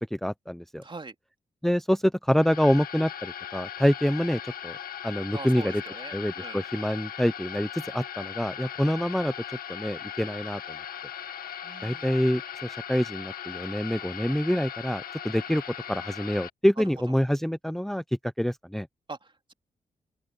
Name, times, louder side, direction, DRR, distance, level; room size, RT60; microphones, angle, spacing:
voice 1, 0.1-0.8 1.6-4.8 5.0-5.8 6.1-10.8 11.8-15.6 15.9-18.9, equal, ahead, 1.0 m, -26 dB
voice 2, 0.8-1.1 5.3-6.6 11.6-12.1 19.1-19.5, right 3 dB, 35° right, 3.2 m, -42 dB
sound 1, 2.3-16.5, left 9 dB, 75° left, 2.2 m, -39 dB
open air
supercardioid pair, 45°, 15 cm